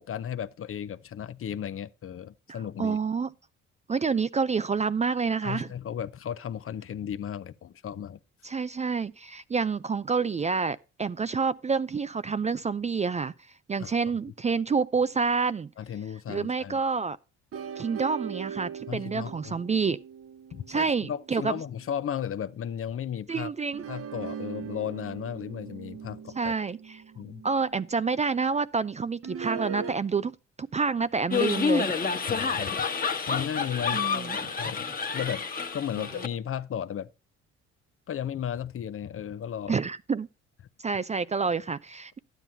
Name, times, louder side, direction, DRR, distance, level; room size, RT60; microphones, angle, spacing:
voice 1, 0.0-3.0 5.4-8.2 13.8-14.0 15.8-16.8 18.9-19.6 20.5-23.5 23.9-26.5 27.2-27.4 32.3-32.9 33.3-34.9 35.1-35.4 35.7-37.1 38.1-39.8, left 9 dB, 45° left, 0.6 m, -35 dB
voice 2, 2.8-3.3 3.9-5.7 8.4-13.3 13.7-15.7 16.3-17.2 17.8-20.0 20.7-21.6 23.3-23.9 26.4-27.0 27.4-30.3 30.6-31.9 33.9-34.4 36.0-36.1 39.7-40.3 40.8-42.2, right 5 dB, 25° right, 0.4 m, -28 dB
sound 1, 17.5-22.1 23.7-27.9 29.2-29.9, right 7 dB, 50° right, 0.8 m, -40 dB
sound 2, 31.3-36.3, left 5 dB, 30° left, 1.3 m, -29 dB
12.0 x 9.2 x 2.8 m
supercardioid pair, 65°, 30 cm